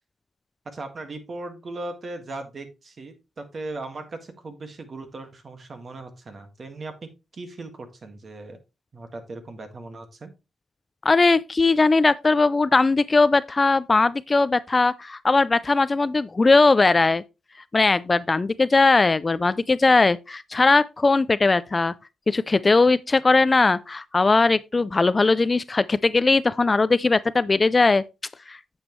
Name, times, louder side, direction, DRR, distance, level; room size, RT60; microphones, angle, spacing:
voice 1, 0.6-8.6 8.9-10.3, right 2 dB, 40° right, 1.7 m, -38 dB
voice 2, 11.0-17.2 17.7-21.9 22.3-28.0 28.5-28.6, left 3 dB, 25° left, 0.3 m, -19 dB
8.9 x 7.1 x 3.1 m
cardioid pair, 105°, 0 cm